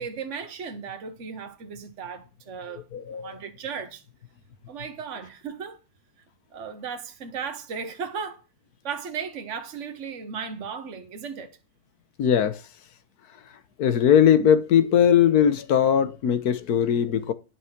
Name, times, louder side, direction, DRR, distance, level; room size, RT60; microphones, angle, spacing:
voice 1, 0.0-4.0 4.7-5.8 6.5-8.4 8.8-11.5, right 6 dB, 50° right, 1.6 m, -36 dB
voice 2, 2.9-3.4 12.2-12.6 13.8-17.3, left 9 dB, 80° left, 1.5 m, -20 dB
11.0 x 6.2 x 5.9 m
omnidirectional pair, 1.6 m